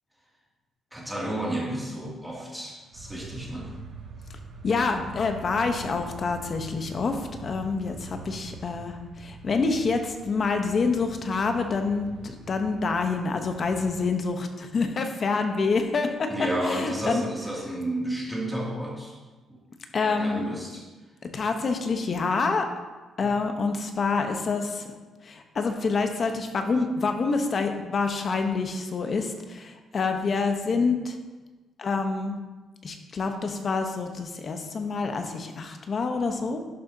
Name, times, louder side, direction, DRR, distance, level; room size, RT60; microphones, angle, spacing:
voice 1, 0.9-3.7 16.3-19.2 19.5-19.6 20.0-20.8 23.2-23.3, right 1 dB, 5° right, -4 dB, 2.5 m, -32 dB
sound 1, 2.9-14.0, right 4 dB, 85° right, 1.4 m, -44 dB
voice 2, 4.6-16.3 16.6-17.2 19.9-20.6 21.3-22.7 23.2-24.9 25.2-31.2 31.8-32.4 32.8-36.6, left 4 dB, 45° left, 5 dB, 1.0 m, -27 dB
11.0 x 6.8 x 2.8 m, 1.3 s
cardioid pair, 90°, 0 cm